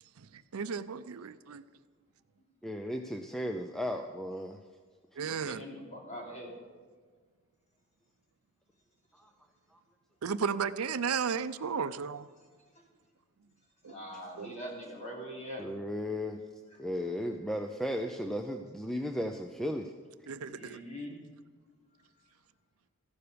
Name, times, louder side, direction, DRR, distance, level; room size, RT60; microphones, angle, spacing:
voice 1, 0.2-1.6 5.2-5.6 10.2-12.3 13.8-13.9 14.3-14.5 20.3-20.8, right 6 dB, 80° right, 13 dB, 0.5 m, -34 dB
voice 2, 2.6-4.6 15.6-16.4 16.8-19.9, equal, ahead, 5 dB, 0.5 m, -35 dB
voice 3, 5.2-6.5 13.8-15.6 20.4-21.2, equal, 35° left, -2 dB, 3.3 m, -43 dB
15.0 x 11.5 x 5.1 m, 1.6 s
head